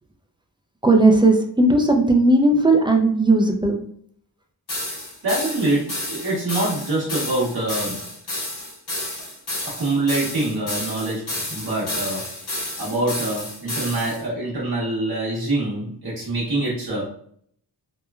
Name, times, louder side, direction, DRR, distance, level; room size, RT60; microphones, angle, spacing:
voice 1, 0.8-3.8, right 2 dB, 15° right, 3 dB, 0.3 m, -16 dB
sound 1, 4.7-14.2, left 1 dB, 70° left, 1.2 m, -31 dB
voice 2, 5.2-8.0 9.6-12.2 12.8-17.1, right 2 dB, 65° right, -6 dB, 0.9 m, -25 dB
3.0 x 2.1 x 2.2 m, 0.64 s
wide cardioid pair, 65°, 41 cm